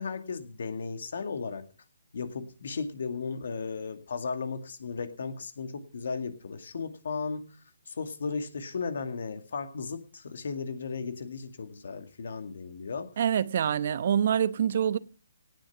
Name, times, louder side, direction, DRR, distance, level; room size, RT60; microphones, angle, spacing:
voice 1, 0.0-1.6 2.1-7.5 7.9-13.1, left 5 dB, 65° left, 2.2 m, -35 dB
voice 2, 13.2-15.0, right 8 dB, 50° right, 0.9 m, -25 dB
18.0 x 8.8 x 6.0 m
hypercardioid pair, 145°, 0 cm